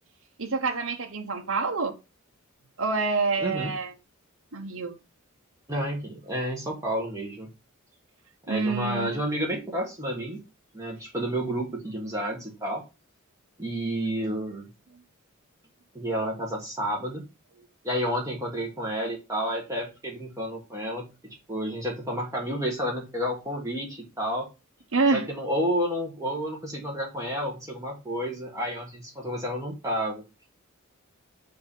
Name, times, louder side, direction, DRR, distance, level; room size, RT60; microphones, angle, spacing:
voice 1, 0.4-1.9 2.8-3.9 4.5-4.9 8.5-9.2 24.9-25.2, right 4 dB, 65° right, 1.0 m, -27 dB
voice 2, 3.4-3.7 5.7-7.5 8.5-10.4 10.7-12.8 13.6-14.6 15.9-17.2 17.8-24.5 25.1-30.2, equal, 15° right, 1.4 m, -30 dB
7.8 x 2.8 x 5.3 m
head